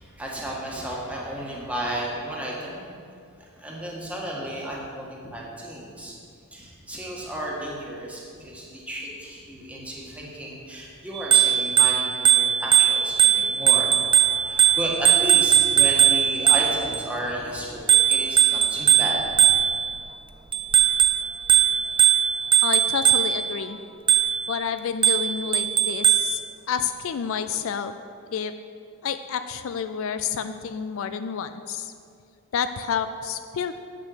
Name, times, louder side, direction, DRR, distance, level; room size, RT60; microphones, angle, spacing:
voice 1, 0.0-2.9 3.6-6.1 6.5-19.5, right 1 dB, 5° right, -4 dB, 1.5 m, -33 dB
Bicycle bell, 11.2-17.0 17.9-20.0 20.5-23.5 24.1-24.5 25.0-26.4, right 9 dB, 25° right, 0.4 m, -19 dB
voice 2, 22.6-23.8 24.5-26.4 26.7-27.9 28.3-28.5 29.0-31.9 32.5-33.8, left 7 dB, 60° left, 10 dB, 0.3 m, -29 dB
8.2 x 6.5 x 6.4 m, 2.4 s
head